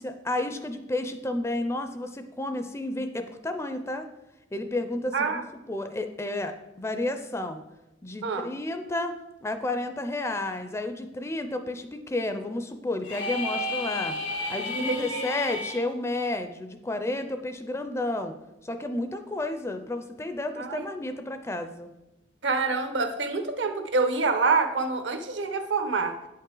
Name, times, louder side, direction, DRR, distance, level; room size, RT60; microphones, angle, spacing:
voice 1, 0.0-4.1 4.5-7.6 8.0-9.1 9.4-14.2 14.5-18.3 18.6-21.9, left 2 dB, 15° left, 8 dB, 0.4 m, -31 dB
sound 1, 13.0-15.8, left 2 dB, 90° left, 2.2 m, -32 dB
voice 2, 14.7-15.3 20.6-20.8 22.4-26.1, right 4 dB, 75° right, 7 dB, 0.9 m, -26 dB
8.9 x 5.5 x 3.8 m, 0.99 s
head